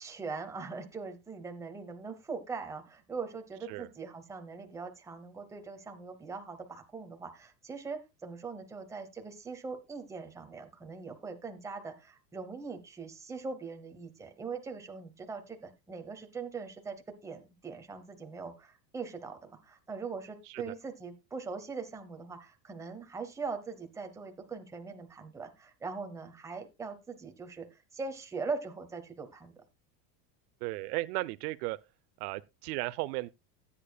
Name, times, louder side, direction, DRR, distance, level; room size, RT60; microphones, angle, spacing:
voice 1, 0.0-17.0 17.2-29.6, right 4 dB, 5° right, 0.8 m, -41 dB
voice 2, 30.6-31.8 32.2-33.3, right 20 dB, 75° right, 0.6 m, -35 dB
15.0 x 8.5 x 2.3 m
cardioid pair, 165°, 47 cm